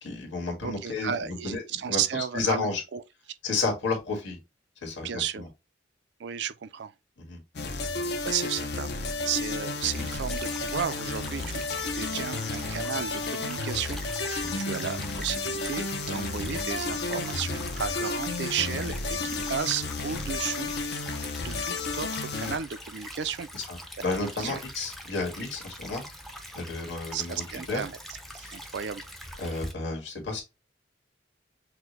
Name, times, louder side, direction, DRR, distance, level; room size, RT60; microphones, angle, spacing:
voice 1, 0.0-1.6 1.9-2.8 3.4-4.4 4.8-5.5 7.2-7.4 12.0-12.2 14.4-14.6 19.3-19.5 23.7-26.0 26.5-27.8 28.4-28.5 29.4-30.4, left 3 dB, 90° left, 1.8 m, -32 dB
voice 2, 0.6-3.0 5.0-5.4 6.2-6.9 8.2-8.9 9.2-20.7 21.4-23.5 24.4-24.6 27.1-28.0 28.3-29.0, right 8 dB, 65° right, 0.4 m, -33 dB
sound 1, 7.6-22.6, left 3 dB, 60° left, 0.7 m, -32 dB
Stream / Trickle dribble, 9.8-29.7, equal, ahead, 0.5 m, -43 dB
5.9 x 2.1 x 3.0 m
head